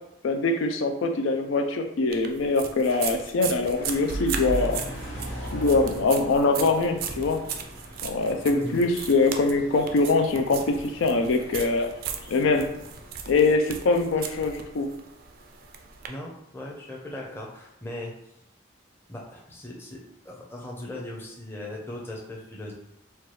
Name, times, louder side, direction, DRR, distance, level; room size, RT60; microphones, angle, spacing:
voice 1, 0.2-4.8 5.5-7.4 8.0-11.9 12.3-12.7 13.3-14.9, left 3 dB, 85° left, 6 dB, 0.4 m, -23 dB
sound 1, 2.1-16.1, right 6 dB, 50° right, 0.4 m, -36 dB
sound 2, 3.7-13.1, equal, 60° left, 1.0 m, -41 dB
voice 2, 8.5-8.8 16.1-18.1 19.1-22.7, left 1 dB, 10° left, -3 dB, 0.6 m, -38 dB
4.4 x 2.3 x 3.1 m, 0.80 s
head